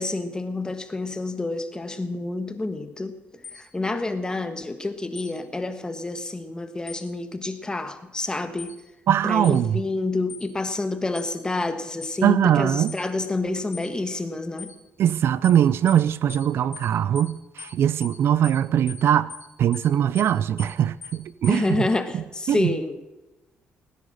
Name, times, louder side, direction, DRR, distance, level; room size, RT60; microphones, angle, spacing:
voice 1, 0.0-3.2 3.5-8.7 9.2-14.7 21.5-23.0, left 2 dB, 15° left, 1.5 m, -28 dB
sound 1, 3.4-3.6 5.1-5.3 6.9-7.0 8.6-8.7 9.4-9.6 10.3-10.5 11.1-11.3 12.0-12.2 12.9-13.0 13.7-13.9 14.6-14.7 15.4-15.6 15.9-16.0 16.3-16.5 16.7-16.9 17.1-17.3 17.6-17.7 18.0-18.2 18.4-18.6 18.9-19.0 19.3-19.5 19.7-19.9 20.1-20.3 20.6-20.7 21.0-21.2 21.4-21.6, left 6 dB, 60° left, 4.5 m, -40 dB
voice 2, 9.1-9.8 12.2-12.9 15.0-19.3 19.6-21.8 22.1-22.2 22.5-22.8, right 10 dB, 65° right, 0.4 m, -21 dB
17.0 x 10.0 x 6.6 m
cardioid pair, 90°, 4 cm